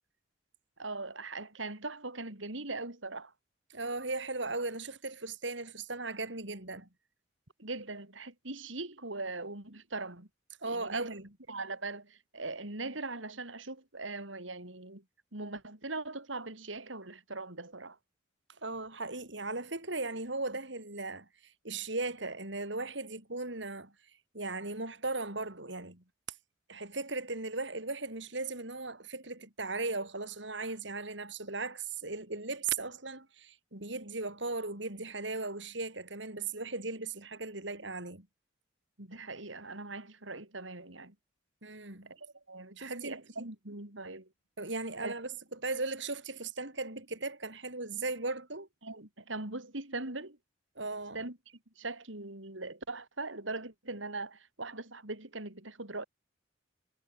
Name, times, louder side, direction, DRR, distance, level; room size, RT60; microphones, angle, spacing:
voice 1, 0.8-3.3 7.6-10.3 10.6-11.2 11.5-15.0 15.3-18.0 39.0-41.1 42.1-44.3 45.0-45.1 48.8-50.4 51.1-51.4 51.8-56.0, right 3 dB, 85° right, 5.1 m, -40 dB
voice 2, 3.7-6.9 10.6-11.3 18.6-23.9 24.3-26.0 26.7-38.3 41.6-42.1 42.8-43.2 44.6-48.7 50.8-51.3, right 3 dB, 65° right, 5.4 m, -37 dB
head